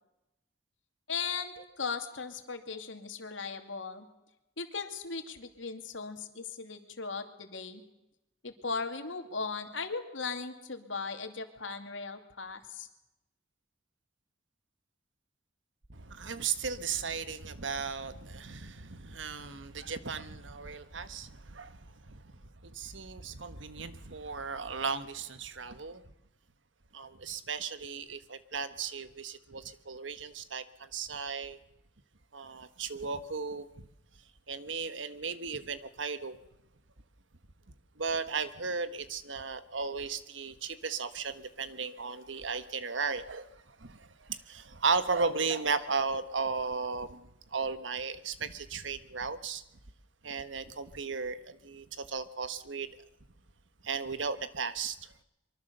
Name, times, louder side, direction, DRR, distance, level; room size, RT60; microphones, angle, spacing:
voice 1, 1.1-4.0 4.6-7.8 8.4-12.9, left 4 dB, 85° left, 2.6 m, -38 dB
voice 2, 15.9-22.2 22.6-26.0 26.9-31.6 32.3-33.7 34.5-36.4 38.0-49.6 50.2-52.9 53.8-55.0, right 5 dB, 75° right, 1.4 m, -35 dB
24.0 x 24.0 x 6.8 m
head